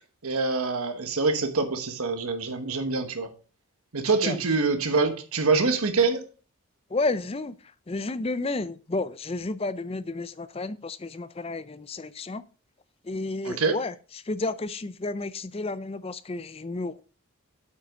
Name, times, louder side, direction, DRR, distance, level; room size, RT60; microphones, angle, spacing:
voice 1, 0.2-3.3 3.9-6.2 13.4-13.8, right 4 dB, 80° right, 1.2 m, -25 dB
voice 2, 6.9-7.5 7.9-12.4 13.0-17.0, left 3 dB, 25° left, 0.4 m, -31 dB
8.4 x 5.5 x 5.0 m
head